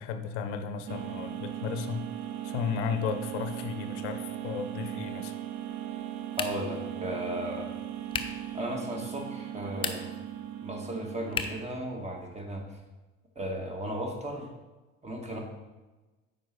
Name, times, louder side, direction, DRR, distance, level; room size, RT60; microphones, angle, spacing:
voice 1, 0.0-2.0 2.4-5.3, left 6 dB, 55° left, 9 dB, 0.7 m, -34 dB
sound 1, 0.9-11.7, right 11 dB, 45° right, 0.6 m, -38 dB
sound 2, 6.3-6.8 8.1-8.5 9.7-10.3 11.3-11.7, left 5 dB, 15° left, 0.5 m, -34 dB
voice 2, 6.4-7.7 8.5-10.1 10.6-12.8 13.3-14.5 15.0-15.4, right 1 dB, 15° right, 1 dB, 1.4 m, -35 dB
8.8 x 5.2 x 3.1 m, 1.2 s
figure-of-eight pair, 65°, 40 cm